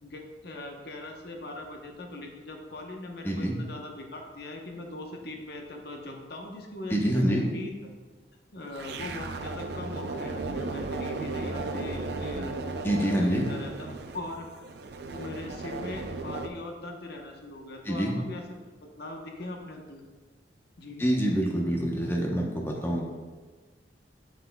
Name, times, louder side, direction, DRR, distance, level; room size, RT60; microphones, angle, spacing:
voice 1, 0.0-7.7 8.5-12.6 13.1-14.6 15.1-18.6 19.0-20.0 20.8-21.0, left 2 dB, 65° left, 2 dB, 1.0 m, -40 dB
voice 2, 3.2-3.6 6.9-7.5 12.8-13.5 17.8-18.2 21.0-23.1, equal, 15° left, -1 dB, 0.9 m, -26 dB
sound 1, 8.7-16.5, right 3 dB, 65° right, 0.5 m, -35 dB
8.3 x 7.9 x 2.3 m, 1.4 s
head